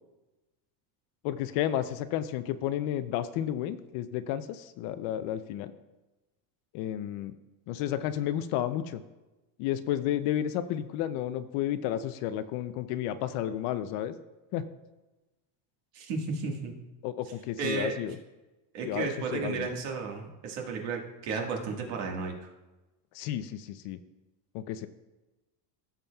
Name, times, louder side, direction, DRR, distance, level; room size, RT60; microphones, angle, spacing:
voice 1, 1.2-5.7 6.7-7.3 7.7-9.0 9.6-14.1 14.5-14.6 17.0-18.2 18.8-19.7 23.1-24.0 24.5-24.9, left 11 dB, 55° left, 12 dB, 0.5 m, -32 dB
voice 2, 15.9-16.7 17.6-18.0 18.7-22.3, right 4 dB, 65° right, 1 dB, 1.7 m, -33 dB
16.0 x 7.0 x 2.3 m, 1.1 s
cardioid pair, 170°, 47 cm